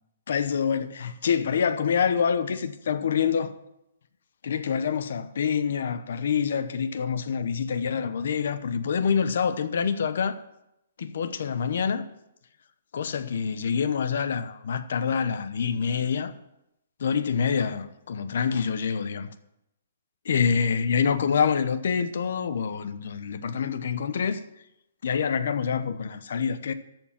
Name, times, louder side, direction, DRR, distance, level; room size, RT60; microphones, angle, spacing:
voice 1, 0.3-3.5 4.4-10.4 11.0-12.1 12.9-16.3 17.0-19.3 20.2-24.4 25.0-26.7, left 6 dB, 55° left, 0.8 m, -26 dB
13.5 x 4.6 x 8.5 m
hypercardioid pair, 175°, 0 cm